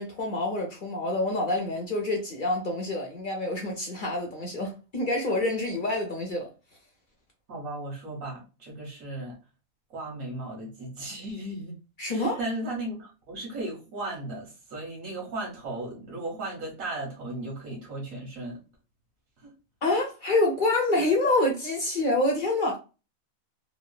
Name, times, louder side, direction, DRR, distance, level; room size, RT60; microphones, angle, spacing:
voice 1, 0.0-6.5 12.0-12.4 19.8-22.8, left 2 dB, 50° left, 0.6 m, -27 dB
voice 2, 7.5-9.4 9.9-11.7 12.1-18.6 19.4-19.5, right 2 dB, 75° right, 1.4 m, -36 dB
3.0 x 2.1 x 2.3 m
omnidirectional pair, 1.4 m